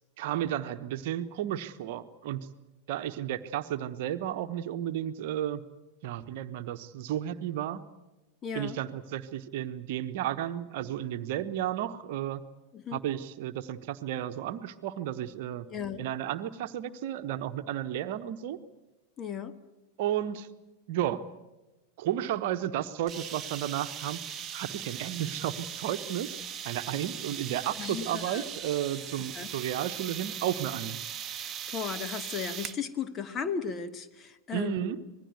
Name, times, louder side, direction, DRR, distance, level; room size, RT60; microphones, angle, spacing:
voice 1, 0.2-2.5 2.9-5.6 6.0-7.8 8.5-12.4 12.9-15.7 16.0-18.6 20.0-20.5 20.9-21.2 22.0-24.2 24.5-26.3 26.6-31.0 34.5-35.0, right 11 dB, 50° right, 10 dB, 1.1 m, -33 dB
voice 2, 8.4-8.8 12.7-13.0 15.7-16.1 19.2-19.6 27.8-28.4 29.3-29.5 31.4-35.0, left 6 dB, 25° left, 10 dB, 1.5 m, -36 dB
sound 1, 23.1-32.8, right 8 dB, 25° right, 1.1 m, -39 dB
25.5 x 20.5 x 8.1 m, 1.1 s
figure-of-eight pair, 90°, 0 cm